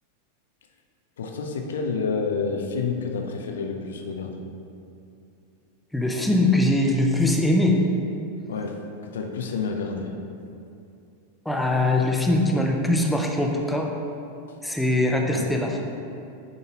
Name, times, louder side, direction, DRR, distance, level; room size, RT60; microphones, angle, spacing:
voice 1, 1.2-4.4 8.5-10.1 14.5-14.6 15.2-15.5, left 4 dB, 60° left, 3 dB, 0.6 m, -29 dB
voice 2, 5.9-7.9 11.5-13.9 14.6-15.8, left 1 dB, 5° left, 1 dB, 0.5 m, -22 dB
9.8 x 4.0 x 2.9 m, 2.6 s
figure-of-eight pair, 90°, 0 cm